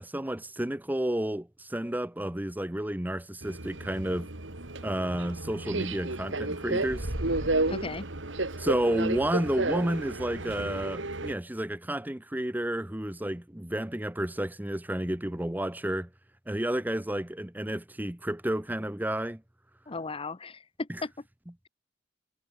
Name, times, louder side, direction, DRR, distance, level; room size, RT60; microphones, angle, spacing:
voice 1, 0.0-4.3 4.8-7.1 8.6-16.1 16.5-19.4 20.9-21.0, right 1 dB, 10° right, 0.9 m, -31 dB
Subway metro underground, 3.4-11.3, right 2 dB, 85° right, 2.8 m, -32 dB
sound 1, 6.8-8.4, right 1 dB, 55° right, 2.8 m, -37 dB
voice 2, 7.7-8.0 19.9-21.1, left 3 dB, 30° left, 0.8 m, -36 dB
head